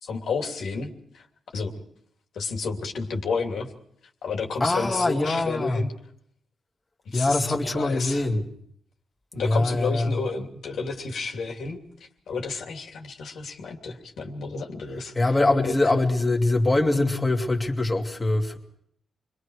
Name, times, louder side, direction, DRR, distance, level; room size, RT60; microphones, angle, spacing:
voice 1, 0.0-1.2 1.5-1.8 2.3-3.7 4.2-5.9 7.0-8.2 9.3-15.1 15.6-15.7, left 4 dB, 80° left, 2.9 m, -31 dB
voice 2, 4.6-5.8 7.1-8.5 9.4-10.2 15.2-18.6, left 2 dB, 20° left, 2.5 m, -23 dB
29.0 x 23.0 x 4.9 m
cardioid pair, 115°, 0 cm